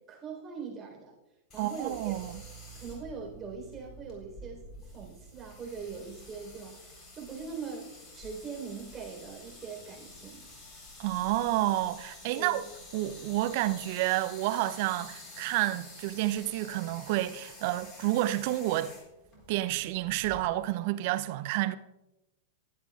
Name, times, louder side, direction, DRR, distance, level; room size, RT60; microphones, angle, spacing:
voice 1, 0.1-1.1 1.5-2.1 2.7-4.7 4.9-10.4 12.3-12.6, right 5 dB, 20° right, 4.0 m, -41 dB
sound 1, 1.5-20.4, left 2 dB, 25° left, 4.0 m, -49 dB
voice 2, 1.6-2.4 11.0-12.6 12.9-18.9 19.5-21.8, right 15 dB, 50° right, 0.6 m, -30 dB
sound 2, 1.9-13.2, right 10 dB, 90° right, 4.3 m, -56 dB
20.0 x 8.2 x 2.4 m
figure-of-eight pair, 95°, 0 cm